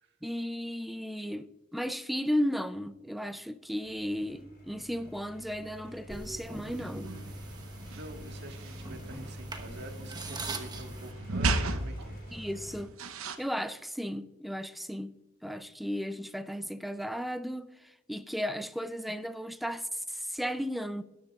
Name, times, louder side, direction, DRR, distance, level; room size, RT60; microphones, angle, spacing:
voice 1, 0.2-7.1 12.3-12.9 13.4-15.1 15.4-17.7 18.1-21.0, equal, ahead, 0.4 m, -34 dB
sound 1, 3.8-12.8, equal, 45° left, 4.0 m, -48 dB
sound 2, 6.1-11.1, right 3 dB, 20° right, 1.2 m, -43 dB
sound 3, 6.6-13.4, right 2 dB, 85° right, 0.9 m, -36 dB
voice 2, 7.9-12.2, right 1 dB, 55° right, 1.6 m, -46 dB
20.0 x 10.5 x 2.4 m
head